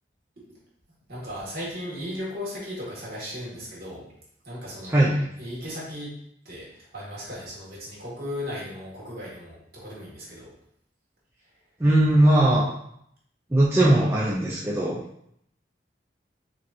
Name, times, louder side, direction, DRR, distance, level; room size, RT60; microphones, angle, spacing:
voice 1, 1.1-4.0 4.4-6.1 6.5-10.5, left 1 dB, 55° right, -6 dB, 1.8 m, -36 dB
voice 2, 11.8-12.6 13.5-15.0, right 1 dB, 15° right, -5 dB, 0.5 m, -19 dB
6.4 x 2.8 x 2.6 m, 0.71 s
head